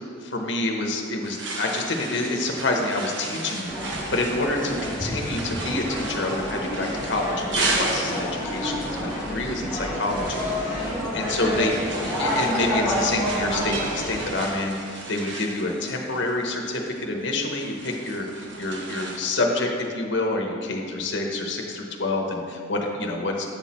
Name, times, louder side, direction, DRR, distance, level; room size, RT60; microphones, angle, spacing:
voice 1, 0.2-3.7 4.1-23.4, left 2 dB, 55° left, 1 dB, 0.8 m, -27 dB
sound 1, 0.7-19.2, right 2 dB, 60° right, 0.9 m, -35 dB
sound 2, 3.7-14.3, equal, 10° right, 1.7 m, -29 dB
7.8 x 5.9 x 4.2 m, 2.3 s
head